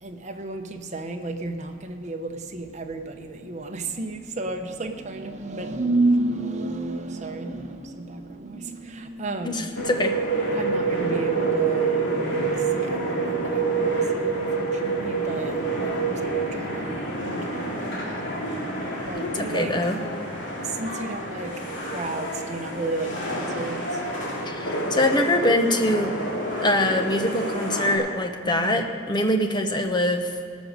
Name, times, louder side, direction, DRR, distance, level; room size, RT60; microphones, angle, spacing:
voice 1, 0.0-9.9 10.5-12.1 12.6-16.9 17.2-18.3 19.1-20.0 20.6-24.0 28.4-28.7, right 2 dB, 40° right, 4 dB, 0.9 m, -31 dB
voice 2, 9.4-10.1 19.1-20.0 24.4-26.1 26.6-30.5, left 1 dB, 25° left, 5 dB, 0.9 m, -24 dB
sound 1, 9.7-28.0, right 3 dB, 75° left, 2.6 m, -28 dB
18.0 x 6.3 x 6.6 m, 2.4 s
head